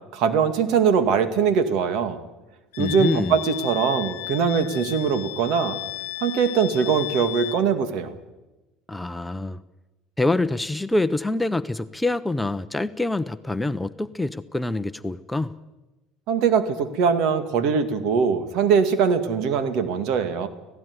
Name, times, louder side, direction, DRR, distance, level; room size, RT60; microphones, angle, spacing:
voice 1, 0.1-2.2 2.8-5.8 6.2-8.1 16.3-20.5, right 6 dB, 65° right, 10 dB, 2.2 m, -22 dB
Wind instrument woodwind instrument, 2.7-7.6, left 20 dB, 85° left, 1.1 m, -34 dB
voice 2, 2.8-3.4 8.9-9.6 10.2-15.6, left 2 dB, 5° left, 11 dB, 0.8 m, -25 dB
17.0 x 16.5 x 9.7 m, 1.1 s
supercardioid pair, 105°, 0 cm